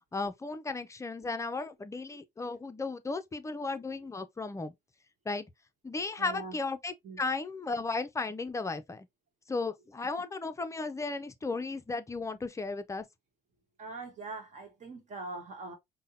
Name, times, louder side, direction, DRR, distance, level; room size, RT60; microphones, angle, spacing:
voice 1, 0.1-4.7 5.3-5.5 5.8-9.1 9.5-13.1, left 3 dB, 20° left, 0.5 m, -35 dB
voice 2, 6.1-6.6 7.0-7.2 13.8-15.7, right 3 dB, 45° right, 1.1 m, -42 dB
5.4 x 2.2 x 2.6 m
cardioid pair, 110°, 17 cm